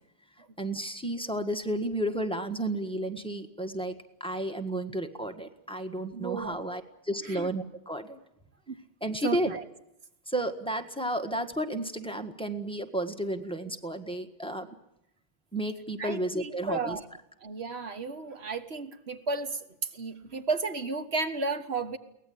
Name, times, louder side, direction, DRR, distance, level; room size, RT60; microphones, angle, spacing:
voice 1, 0.6-8.2 9.0-9.6 10.3-14.7 15.5-17.0, right 1 dB, 5° left, 6 dB, 1.6 m, -32 dB
voice 2, 6.1-6.6 7.2-7.5 8.7-8.8 9.2-9.6 16.0-17.0 17.4-19.6 19.9-22.0, right 4 dB, 90° right, 8 dB, 1.8 m, -33 dB
23.0 x 18.5 x 8.7 m, 0.81 s
omnidirectional pair, 1.0 m